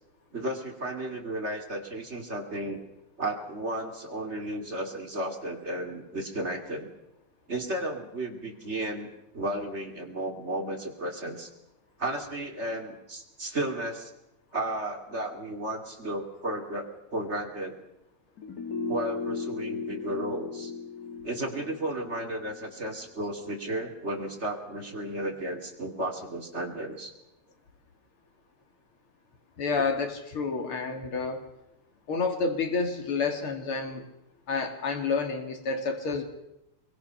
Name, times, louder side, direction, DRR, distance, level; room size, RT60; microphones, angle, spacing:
voice 1, 0.3-2.8 3.2-6.9 7.5-9.1 9.3-11.5 12.0-14.1 14.5-17.8 18.9-20.7 21.2-27.1, right 1 dB, 30° right, 2 dB, 2.9 m, -33 dB
sound 1, 18.4-23.6 23.9-24.0, left 5 dB, 45° left, 2.9 m, -37 dB
voice 2, 29.6-31.4 32.1-34.1 34.5-36.2, left 4 dB, 85° left, 4 dB, 3.1 m, -29 dB
26.0 x 23.0 x 5.8 m, 0.86 s
omnidirectional pair, 2.3 m